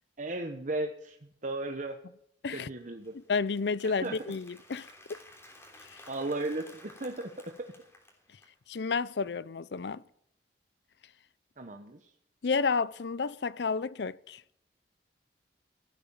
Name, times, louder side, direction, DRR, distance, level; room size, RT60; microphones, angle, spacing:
voice 1, 0.2-2.0 2.5-3.1 3.8-4.2 6.1-7.3 11.6-12.1, right 2 dB, 45° right, 1.1 m, -35 dB
Applause, 2.8-8.6, left 1 dB, 15° left, 3.3 m, -55 dB
voice 2, 3.1-5.2 5.8-6.0 8.7-10.0 12.4-14.4, left 4 dB, 70° left, 0.5 m, -31 dB
16.0 x 8.7 x 7.1 m
head